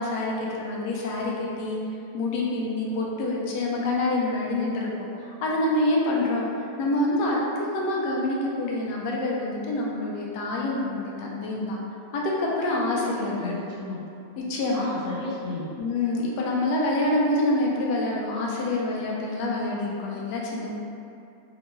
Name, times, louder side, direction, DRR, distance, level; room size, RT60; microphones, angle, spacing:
voice 1, 0.0-1.8 2.1-6.5 6.8-11.8 12.1-13.5 14.4-14.9 15.8-20.7, left 2 dB, 75° left, -3 dB, 1.1 m, -26 dB
voice 2, 13.2-14.0 14.7-15.7, left 3 dB, 50° left, -11 dB, 0.8 m, -33 dB
3.4 x 2.2 x 2.9 m, 2.6 s
omnidirectional pair, 1.9 m